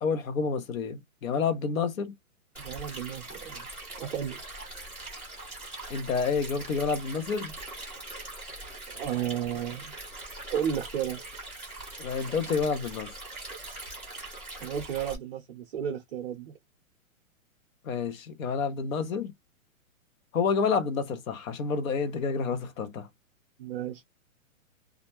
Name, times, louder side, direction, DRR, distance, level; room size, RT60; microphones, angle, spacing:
voice 1, 0.0-2.1 5.9-7.6 12.0-13.1 17.8-19.3 20.3-23.1, left 5 dB, 70° left, 0.8 m, -29 dB
Stream, 2.5-15.1, right 2 dB, 5° left, 0.8 m, -42 dB
voice 2, 2.6-3.7 4.0-4.4 8.9-9.9 10.5-11.2 14.6-16.5 23.6-24.0, right 9 dB, 40° right, 0.6 m, -33 dB
2.5 x 2.1 x 2.9 m
hypercardioid pair, 165°, 42 cm